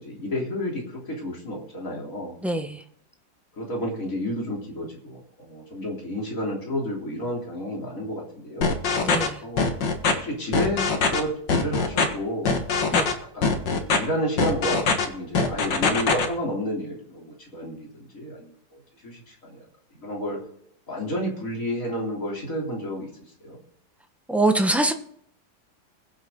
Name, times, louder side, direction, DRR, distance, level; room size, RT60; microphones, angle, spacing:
voice 1, 0.0-2.4 3.6-8.8 9.4-9.7 10.1-13.1 13.3-18.5 19.0-19.6 20.0-20.4 20.9-23.1 23.4-23.6, equal, 50° left, -2 dB, 3.8 m, -31 dB
voice 2, 2.4-2.8 9.0-9.4 12.9-13.1 24.3-24.9, right 2 dB, ahead, 4 dB, 1.0 m, -23 dB
sound 1, 8.6-9.3 9.6-10.1 10.5-11.2 11.5-12.0 12.5-13.1 13.4-14.0 14.4-15.1 15.3-16.3, left 4 dB, 85° left, 2.3 m, -22 dB
22.0 x 7.9 x 3.8 m, 0.67 s
omnidirectional pair, 1.9 m